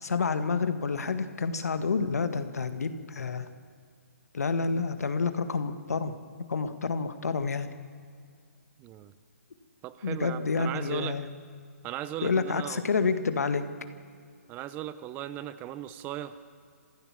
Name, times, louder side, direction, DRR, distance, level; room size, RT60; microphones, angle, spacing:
voice 1, 0.0-3.5 4.3-6.1 6.5-7.7 10.0-11.3 12.2-13.6, left 4 dB, 80° left, 10 dB, 1.9 m, -29 dB
voice 2, 8.8-9.1 9.8-11.2 11.8-12.8 14.5-16.3, right 12 dB, 20° right, 14 dB, 0.8 m, -37 dB
27.5 x 15.5 x 7.5 m, 2.2 s
hypercardioid pair, 145°, 8 cm